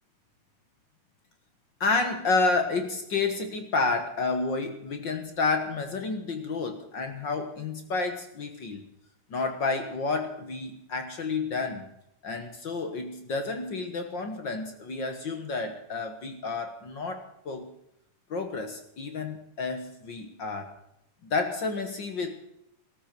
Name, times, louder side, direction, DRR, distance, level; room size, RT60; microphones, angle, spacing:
voice 1, 1.8-8.9 9.3-11.9 12.2-17.7 18.3-20.7 21.2-22.3, left 3 dB, 50° left, 7 dB, 1.5 m, -30 dB
15.5 x 13.5 x 6.0 m, 0.79 s
omnidirectional pair, 3.7 m